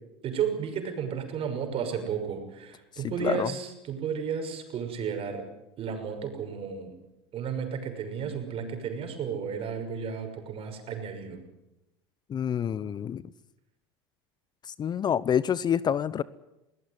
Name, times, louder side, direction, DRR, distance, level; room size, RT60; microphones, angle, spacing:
voice 1, 0.2-5.4 5.8-6.9 7.3-11.4, right 7 dB, 45° right, 6 dB, 6.2 m, -33 dB
voice 2, 3.0-3.5 12.3-13.2 14.7-16.2, left 8 dB, 35° left, 19 dB, 0.8 m, -27 dB
21.5 x 18.0 x 9.8 m, 0.94 s
hypercardioid pair, 85°, 13 cm